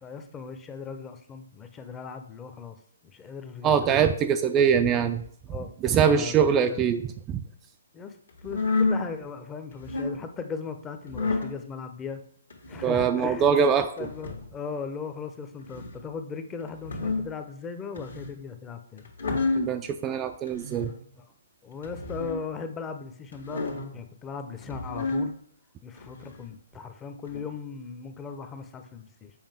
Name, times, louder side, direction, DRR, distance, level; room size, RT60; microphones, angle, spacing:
voice 1, 0.0-2.8 3.1-4.1 5.5-6.9 7.9-12.2 12.7-13.7 14.0-19.1 21.2-21.3 21.6-23.6 23.9-25.4 25.8-29.3, left 5 dB, 15° left, 8 dB, 0.6 m, -38 dB
voice 2, 3.6-5.2 5.8-7.4 12.8-13.9 19.6-20.9, right 7 dB, 20° right, 7 dB, 0.3 m, -23 dB
sound 1, 8.4-9.0 9.7-10.2 11.1-11.5 12.5-12.9 14.0-14.5 15.6-16.0 16.7-17.3 18.0-18.4 19.0-19.7 20.5-21.0 21.8-22.4 23.3-23.9 24.6-25.3 26.0-26.5 27.3-27.4, left 3 dB, 70° left, 1.5 m, -30 dB
7.2 x 5.1 x 3.5 m, 0.64 s
figure-of-eight pair, 130°, 0 cm